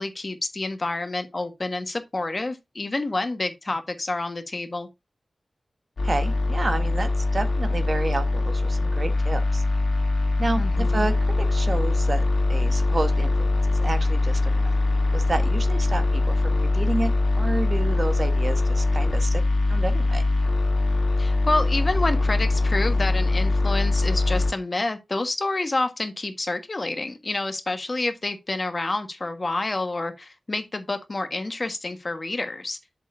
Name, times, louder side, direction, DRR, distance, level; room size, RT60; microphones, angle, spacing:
voice 1, 0.0-4.9 10.6-11.1 21.2-32.8, left 2 dB, 45° left, 1.4 m, -28 dB
sound 1, 6.0-24.5, left 2 dB, 75° left, 2.6 m, -22 dB
voice 2, 6.0-9.6 10.4-12.2 12.5-13.5 13.8-14.7 15.1-19.4 19.7-20.2, right 3 dB, 55° right, 1.3 m, -30 dB
7.5 x 6.8 x 2.6 m
cardioid pair, 50°, 0 cm